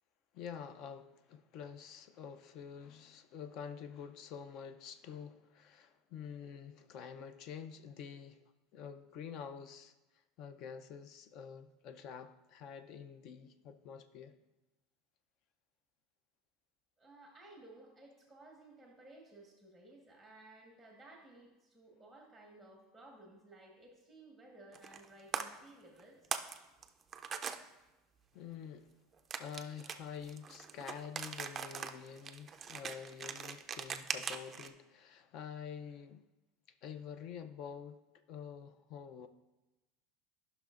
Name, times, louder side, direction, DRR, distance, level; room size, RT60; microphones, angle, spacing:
voice 1, 0.3-8.4 8.7-9.9 10.4-14.4 28.3-28.9 29.4-36.3 36.8-38.0 38.3-39.3, left 7 dB, 45° left, 0.5 m, -47 dB
voice 2, 17.0-26.3, right 2 dB, 5° left, 1.1 m, -57 dB
sound 1, 24.7-25.1 25.3-25.4 26.0-26.6 26.8-27.6 29.3-34.7, right 6 dB, 20° right, 0.4 m, -41 dB
14.0 x 5.8 x 2.5 m
cardioid pair, 160°, 0 cm